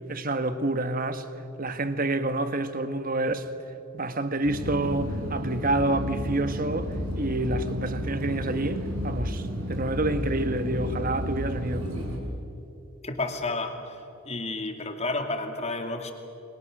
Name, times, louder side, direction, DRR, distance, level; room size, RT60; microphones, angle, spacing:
voice 1, 0.1-1.2 1.6-3.4 3.9-11.9, right 2 dB, 40° right, 1.3 m, -28 dB
sound 1, 4.4-12.2, equal, 75° right, 5.1 m, -32 dB
voice 2, 13.0-16.1, left 2 dB, 30° left, 2.2 m, -31 dB
29.0 x 23.5 x 6.5 m
head